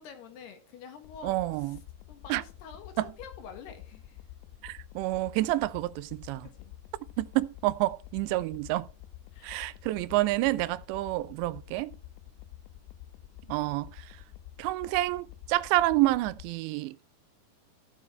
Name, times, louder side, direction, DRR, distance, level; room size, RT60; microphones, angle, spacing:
voice 1, 0.0-1.8 2.1-4.2 6.4-6.7 9.3-9.6, left 6 dB, 70° left, 3.5 m, -48 dB
sound 1, 1.0-16.5, left 13 dB, 85° left, 2.9 m, -49 dB
voice 2, 1.2-1.8 2.3-2.4 3.0-3.1 4.6-6.5 7.2-8.9 9.4-11.9 13.5-14.2 14.6-17.0, right 17 dB, 85° right, 2.8 m, -28 dB
15.0 x 7.5 x 3.2 m
omnidirectional pair, 5.0 m